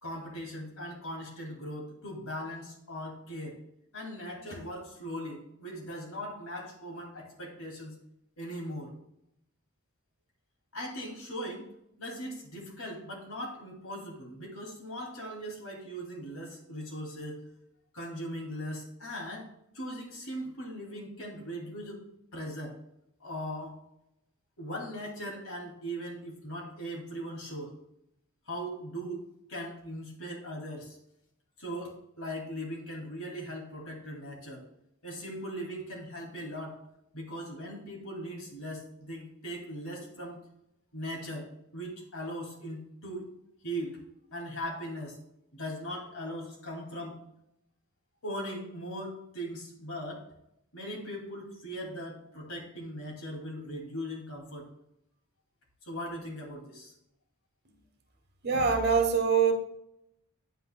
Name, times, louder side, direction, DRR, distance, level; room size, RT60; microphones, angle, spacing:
voice 1, 0.0-3.6 3.9-8.0 8.4-8.9 10.7-11.7 12.0-17.5 17.9-19.5 19.7-22.0 22.3-22.8 23.2-23.7 24.6-27.7 28.5-31.0 31.6-34.6 35.0-36.8 37.1-40.4 40.9-41.5 41.7-43.3 43.6-44.0 44.3-45.2 45.5-47.2 48.2-50.2 50.7-54.7 55.8-56.9, equal, 90° left, 2.4 m, -39 dB
voice 2, 58.4-59.5, right 6 dB, 50° right, 1.0 m, -24 dB
9.1 x 8.0 x 2.2 m
head